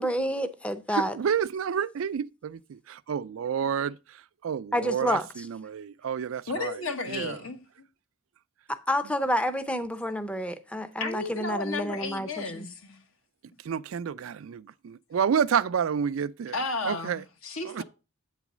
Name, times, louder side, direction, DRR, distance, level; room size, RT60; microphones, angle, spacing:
voice 1, 0.0-1.1 4.7-5.5 8.9-12.7, equal, 5° left, 0.6 m, -29 dB
voice 2, 0.9-4.0 4.4-6.8 7.1-7.4 13.6-16.5 16.9-17.2 17.7-17.8, right 7 dB, 70° right, 0.4 m, -29 dB
voice 3, 6.5-7.9 11.0-13.0 16.5-17.8, left 3 dB, 75° left, 1.3 m, -33 dB
8.3 x 4.1 x 6.0 m
head